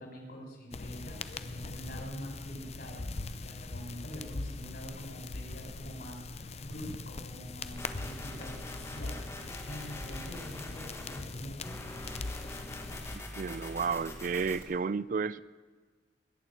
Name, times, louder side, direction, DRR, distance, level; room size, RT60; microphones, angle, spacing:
voice 1, 0.0-9.2 9.6-11.7, equal, 55° left, 2 dB, 4.7 m, -45 dB
sound 1, 0.7-13.2, left 3 dB, 35° left, 0.7 m, -41 dB
sound 2, 7.8-11.3 11.6-14.6, left 1 dB, 15° left, 1.8 m, -44 dB
voice 2, 13.4-15.4, right 5 dB, 45° right, 18 dB, 0.4 m, -32 dB
20.5 x 7.3 x 9.3 m, 1.4 s
head